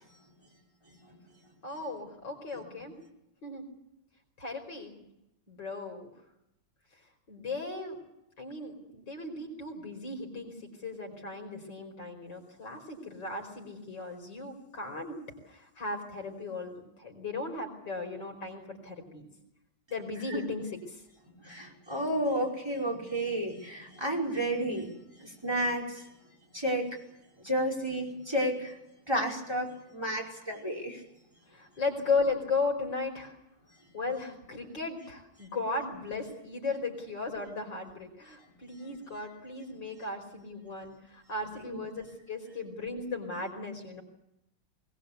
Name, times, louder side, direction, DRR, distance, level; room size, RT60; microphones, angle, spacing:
voice 1, 1.6-3.0 3.4-3.6 4.4-4.9 5.5-6.1 7.3-8.0 8.4-10.5 10.8-15.2 15.5-19.3 19.9-21.0 21.5-21.6 31.5-33.4 33.9-44.0, left 3 dB, 70° left, 3 dB, 5.6 m, -36 dB
voice 2, 21.4-24.9 25.2-26.0 26.5-26.9 27.4-28.8 29.1-31.0, right 1 dB, 15° right, 0 dB, 5.4 m, -31 dB
22.0 x 21.5 x 8.4 m, 0.85 s
omnidirectional pair, 2.0 m